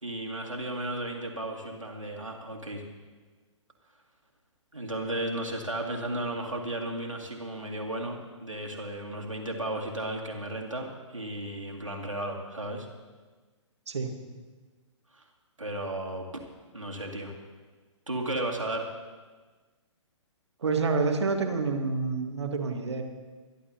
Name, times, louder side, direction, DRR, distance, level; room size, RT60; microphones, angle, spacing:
voice 1, 0.0-2.8 4.7-12.9 15.1-15.2 15.6-16.2 16.7-17.4 18.1-18.9, right 1 dB, 80° right, 0 dB, 2.5 m, -34 dB
voice 2, 20.6-23.0, right 4 dB, 60° right, 4 dB, 1.7 m, -28 dB
25.0 x 11.5 x 2.9 m, 1.4 s
figure-of-eight pair, 125°, 16 cm